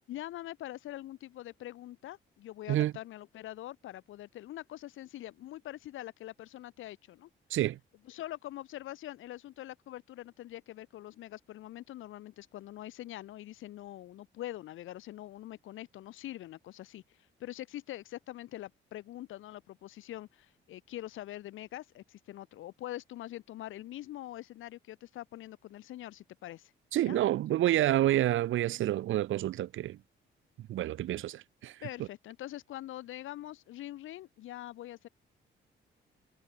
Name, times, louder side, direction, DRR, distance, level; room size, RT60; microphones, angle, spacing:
voice 1, 0.1-7.3 8.0-17.0 17.4-26.7 27.0-27.2 31.8-35.1, left 14 dB, 85° left, 5.4 m, -44 dB
voice 2, 26.9-30.0 30.7-31.8, right 13 dB, 80° right, 2.0 m, -28 dB
cardioid pair, 90°, 20 cm